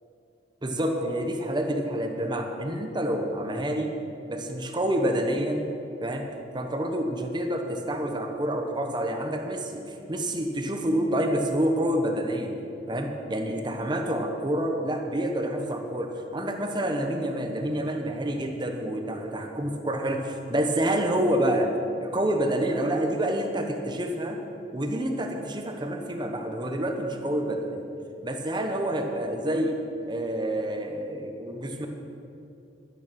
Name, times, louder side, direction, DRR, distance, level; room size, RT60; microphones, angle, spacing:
voice 1, 0.6-3.9 4.3-5.6 6.0-6.2 6.5-9.7 10.1-12.5 12.9-21.7 22.0-24.4 24.7-27.8 28.2-29.8 30.1-31.9, right 1 dB, 25° right, 4 dB, 1.0 m, -28 dB
12.5 x 9.5 x 6.0 m, 2.7 s
head